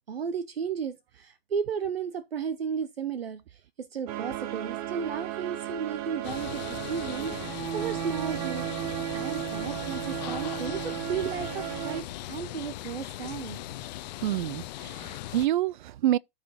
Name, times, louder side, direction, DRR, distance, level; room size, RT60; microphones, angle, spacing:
voice 1, 0.1-8.9 9.1-13.6, right 7 dB, 80° right, 1.0 m, -34 dB
sound 1, 4.1-12.0, right 12 dB, 40° right, 1.1 m, -34 dB
sound 2, 6.2-15.5, left 15 dB, 45° left, 0.8 m, -39 dB
voice 2, 14.2-16.2, right 13 dB, 55° right, 0.5 m, -27 dB
13.5 x 4.9 x 4.2 m
hypercardioid pair, 125°, 30 cm